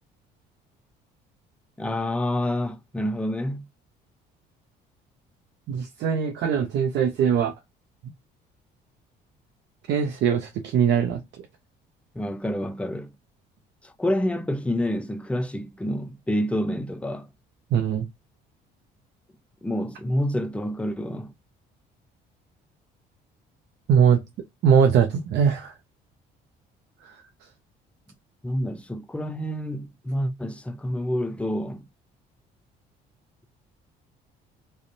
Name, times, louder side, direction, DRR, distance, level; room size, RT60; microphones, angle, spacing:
voice 1, 1.8-3.6 12.1-13.1 13.8-17.3 19.6-21.3 28.4-31.8, left 1 dB, 5° left, 0.4 m, -28 dB
voice 2, 5.7-7.5 9.9-11.2 17.7-18.1 23.9-24.2 24.6-25.7, right 7 dB, 60° right, 0.5 m, -21 dB
2.5 x 2.1 x 2.6 m
hypercardioid pair, 65°, 21 cm